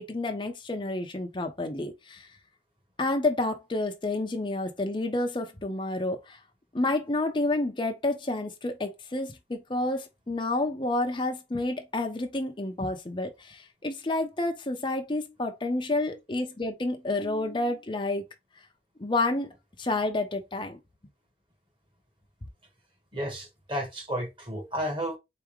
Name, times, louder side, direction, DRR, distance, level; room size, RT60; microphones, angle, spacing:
voice 1, 0.0-2.3 3.0-6.4 6.7-18.2 19.0-19.5 19.8-20.8, left 2 dB, 30° left, 0.7 m, -29 dB
voice 2, 23.1-25.2, equal, 30° right, 1.7 m, -32 dB
4.1 x 3.5 x 3.2 m
head